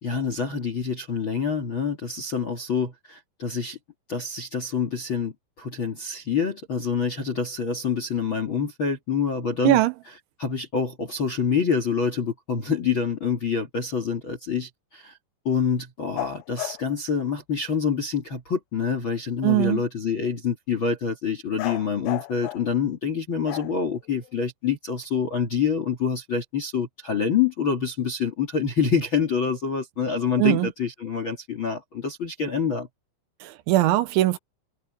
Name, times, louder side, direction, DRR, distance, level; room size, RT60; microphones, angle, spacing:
voice 1, 0.0-3.8 4.1-9.8 10.4-15.2 15.4-32.9, left 6 dB, 45° left, 1.7 m, -26 dB
sound 1, 16.2-16.9 21.6-22.7 23.4-24.4, left 19 dB, 85° left, 2.3 m, -34 dB
voice 2, 19.4-19.8 30.4-30.7 33.4-34.4, right 17 dB, 80° right, 3.2 m, -20 dB
omnidirectional pair, 5.5 m